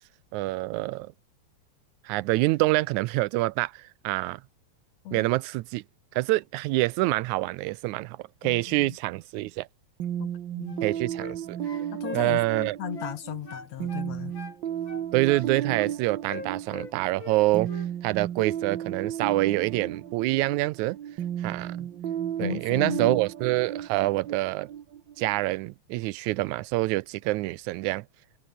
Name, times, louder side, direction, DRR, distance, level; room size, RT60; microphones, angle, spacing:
voice 1, 0.3-1.1 2.1-4.4 5.1-5.8 6.2-9.7 10.8-11.6 12.1-12.8 15.1-17.7 18.0-21.0 21.4-21.9 22.4-24.7 25.2-28.0, right 20 dB, 85° right, 2.0 m, -26 dB
voice 2, 8.4-9.0 10.2-10.8 11.9-14.4 22.4-23.2, left 12 dB, 70° left, 2.2 m, -36 dB
sound 1, 10.0-25.6, right 10 dB, 55° right, 1.3 m, -34 dB
sound 2, 10.7-11.4 11.6-13.2 13.5-14.6 14.9-15.9 16.3-17.4 17.6-17.9, left 3 dB, 40° left, 5.4 m, -42 dB
omnidirectional pair, 3.4 m